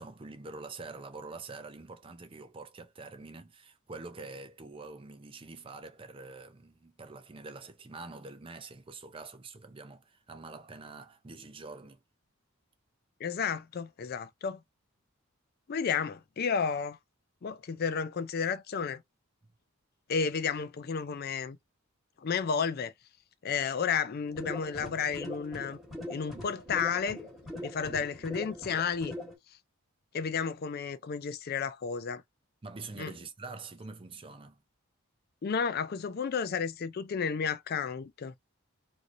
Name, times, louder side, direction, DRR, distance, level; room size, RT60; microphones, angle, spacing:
voice 1, 0.0-12.0 32.6-34.6, right 3 dB, 25° right, 0.4 m, -45 dB
voice 2, 13.2-14.6 15.7-17.0 17.4-19.0 20.1-21.6 22.2-22.9 23.4-25.8 26.1-27.2 27.6-29.2 30.1-32.2 33.0-33.1 35.4-38.3, left 6 dB, 45° left, 0.4 m, -32 dB
sound 1, 24.3-29.3, left 1 dB, ahead, 1.3 m, -42 dB
3.0 x 2.7 x 2.5 m
head